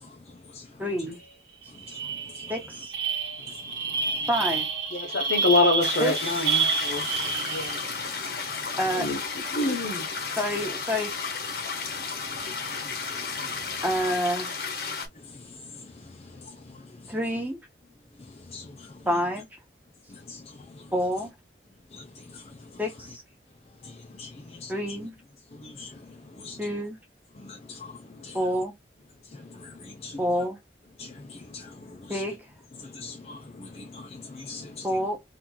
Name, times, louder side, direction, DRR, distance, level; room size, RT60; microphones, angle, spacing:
voice 1, 0.8-1.2 2.5-2.9 4.3-4.7 6.0-6.5 8.8-9.1 10.4-11.1 13.8-14.5 17.1-17.6 19.1-19.5 20.9-21.3 22.8-23.2 24.7-25.2 26.6-27.0 28.3-28.7 30.2-30.6 32.1-32.5 34.8-35.2, equal, 10° right, 0.9 m, -28 dB
sound 1, 1.2-1.3 1.6-8.0, right 5 dB, 80° right, 1.1 m, -29 dB
voice 2, 4.9-7.8 8.9-9.2 9.5-10.0, left 2 dB, 85° left, 1.2 m, -26 dB
sound 2, 5.8-15.1, left 5 dB, 60° left, 1.0 m, -33 dB
voice 3, 27.5-27.9 28.2-28.4 29.6-30.2 31.0-31.1 31.5-31.7 32.9-34.9, left 4 dB, 35° left, 0.5 m, -41 dB
3.0 x 2.6 x 3.6 m
head